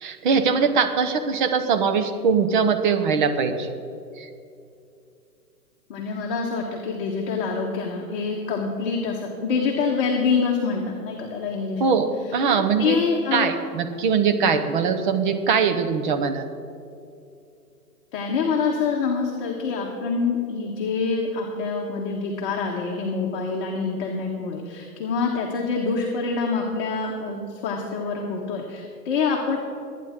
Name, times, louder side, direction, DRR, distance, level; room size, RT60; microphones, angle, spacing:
voice 1, 0.0-3.7 4.2-4.3 11.8-13.0 13.3-16.4, right 5 dB, 30° right, 8 dB, 0.9 m, -22 dB
voice 2, 5.9-11.9 12.5-13.5 18.1-29.6, left 5 dB, 35° left, -1 dB, 1.4 m, -26 dB
23.5 x 9.5 x 3.7 m, 2.5 s
hypercardioid pair, 150°, 48 cm